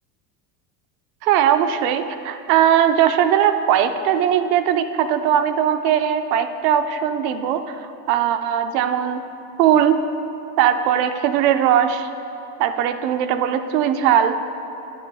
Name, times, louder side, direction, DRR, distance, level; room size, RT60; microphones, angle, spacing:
voice 1, 1.2-9.2 9.6-10.0 10.6-12.1 12.6-14.3, right 9 dB, 90° right, 9 dB, 0.6 m, -19 dB
9.7 x 9.0 x 2.3 m, 2.9 s
cardioid pair, 180°, 47 cm